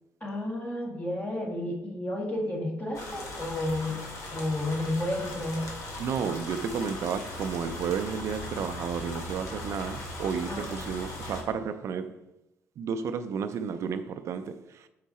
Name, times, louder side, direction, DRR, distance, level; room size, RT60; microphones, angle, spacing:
voice 1, 0.2-4.0 4.3-5.6 10.5-10.9, left 1 dB, 25° left, 1.8 m, -31 dB
sound 1, 2.9-11.4, left 2 dB, 75° left, 1.6 m, -39 dB
voice 2, 6.0-12.3 12.8-14.9, right 6 dB, 65° right, 0.4 m, -32 dB
6.5 x 4.6 x 4.2 m
cardioid pair, 95°, 5 cm